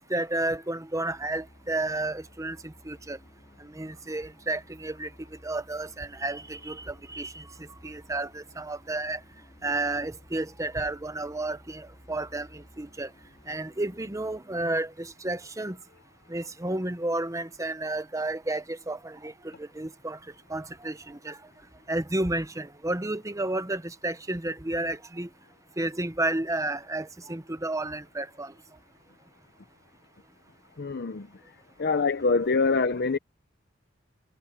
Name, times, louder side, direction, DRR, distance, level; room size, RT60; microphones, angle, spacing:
voice 1, 0.0-3.2 3.6-5.1 5.4-9.2 9.6-13.1 13.5-15.8 16.3-20.2 20.5-21.4 21.9-25.3 25.8-28.5, right 2 dB, 15° right, 0.8 m, -32 dB
sound 1, 1.1-14.4, equal, 25° left, 2.7 m, -55 dB
voice 2, 30.8-31.3 31.8-33.2, left 4 dB, 55° left, 0.7 m, -24 dB
head